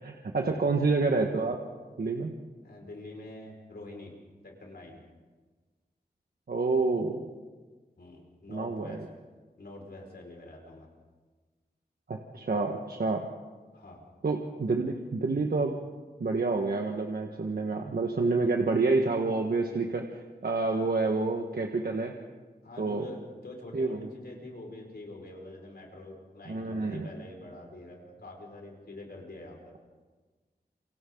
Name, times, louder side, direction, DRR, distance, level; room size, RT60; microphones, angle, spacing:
voice 1, 0.0-1.6 2.0-2.3 6.5-7.3 8.5-9.1 12.1-13.3 14.2-15.7 16.2-20.0 20.4-22.1 22.8-23.0 23.7-24.1 26.5-27.1, right 3 dB, 70° right, 2 dB, 1.5 m, -28 dB
voice 2, 2.6-4.1 4.4-5.0 8.0-9.0 9.6-10.9 13.7-14.0 20.7-20.9 22.6-29.7, left 2 dB, 85° left, 0 dB, 5.4 m, -45 dB
28.0 x 25.5 x 3.9 m, 1.4 s
wide cardioid pair, 90°, 16 cm